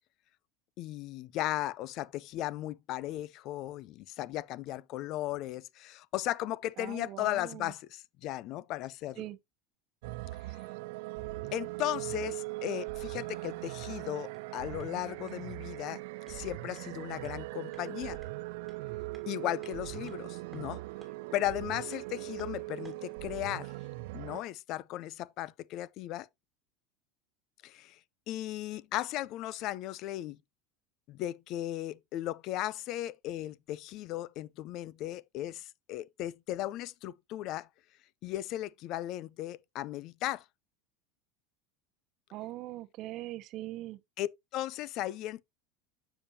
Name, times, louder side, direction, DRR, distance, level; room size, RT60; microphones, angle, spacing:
voice 1, 0.8-9.3 11.5-16.0 16.3-18.2 19.3-20.8 21.3-23.7 24.1-26.3 27.6-28.0 28.3-30.4 31.1-37.7 38.2-40.4 44.2-45.4, left 14 dB, 50° left, 0.4 m, -36 dB
voice 2, 6.8-7.7 9.2-9.4 42.3-44.0, right 15 dB, 45° right, 0.7 m, -41 dB
sound 1, 10.0-24.4, right 21 dB, 70° right, 0.3 m, -40 dB
sound 2, 14.1-23.2, right 2 dB, 5° right, 2.7 m, -62 dB
7.1 x 6.9 x 2.7 m
supercardioid pair, 140°, 0 cm